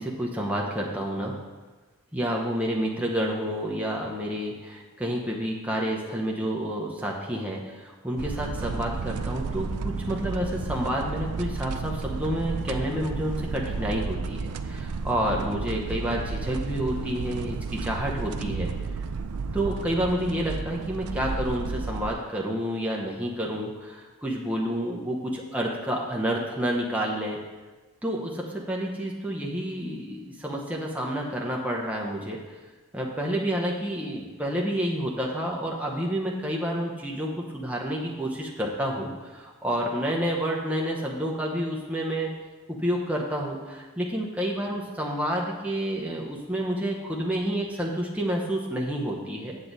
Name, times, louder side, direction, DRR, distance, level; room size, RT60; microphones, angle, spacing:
voice 1, 0.0-1.4 2.1-18.7 19.5-27.4 28.0-32.4 32.9-42.4 42.7-49.6, equal, 5° right, -2 dB, 0.8 m, -29 dB
sound 1, 8.2-22.1, right 4 dB, 85° right, 0.5 m, -32 dB
8.2 x 7.4 x 4.0 m, 1.2 s
head